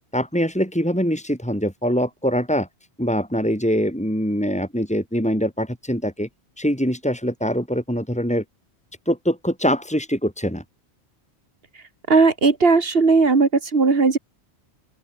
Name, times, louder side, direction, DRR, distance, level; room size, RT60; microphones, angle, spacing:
voice 1, 0.1-2.7 3.0-6.3 6.6-8.4 9.1-10.6, equal, 5° left, 6.0 m, -23 dB
voice 2, 12.1-14.2, right 4 dB, 65° right, 2.1 m, -17 dB
open air
omnidirectional pair, 1.1 m